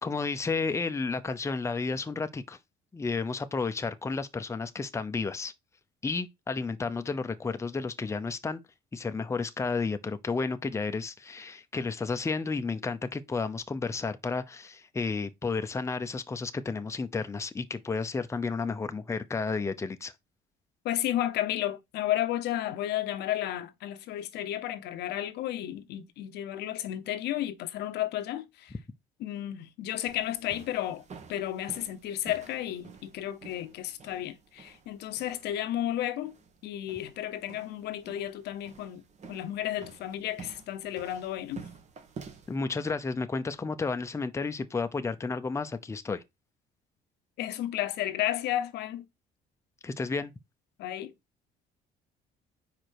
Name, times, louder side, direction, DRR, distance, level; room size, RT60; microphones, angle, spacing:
voice 1, 0.0-2.6 2.9-5.5 6.0-8.6 8.9-20.1 42.5-46.2 49.8-50.3, left 4 dB, 15° left, 0.7 m, -32 dB
voice 2, 20.8-28.7 29.2-31.0 31.3-36.3 36.6-39.0 39.3-41.6 47.4-49.1 50.8-51.1, left 13 dB, 80° left, 0.9 m, -32 dB
sound 1, 30.1-42.6, right 5 dB, 45° right, 1.4 m, -50 dB
5.0 x 4.9 x 4.5 m
cardioid pair, 110°, 17 cm